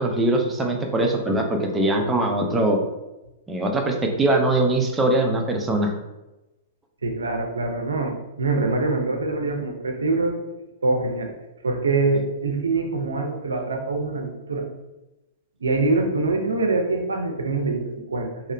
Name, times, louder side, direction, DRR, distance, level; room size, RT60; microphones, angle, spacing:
voice 1, 0.0-2.8 3.5-5.9, right 1 dB, 15° right, 2 dB, 0.4 m, -22 dB
voice 2, 7.0-10.4 10.8-11.3 11.6-14.7 15.6-18.5, right 3 dB, 90° right, 2 dB, 0.5 m, -24 dB
2.7 x 2.0 x 2.6 m, 1.0 s
hypercardioid pair, 120°, 0 cm